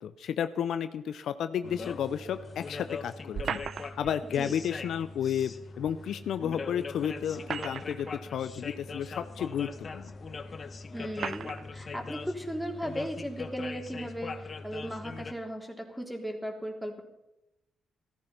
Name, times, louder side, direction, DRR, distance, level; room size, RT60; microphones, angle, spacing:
voice 1, 0.0-3.6 4.0-10.1, left 9 dB, 65° left, 12 dB, 0.6 m, -32 dB
sound 1, 1.6-15.3, left 4 dB, 45° left, 1.2 m, -41 dB
sound 2, 3.3-4.2 5.9-6.0 7.2-8.1 9.0-9.1 10.1-10.2 11.1-11.6, right 7 dB, 55° right, 0.5 m, -36 dB
voice 2, 10.9-17.0, equal, ahead, 3 dB, 3.7 m, -37 dB
15.0 x 14.0 x 5.7 m, 0.91 s
hypercardioid pair, 50°, 0 cm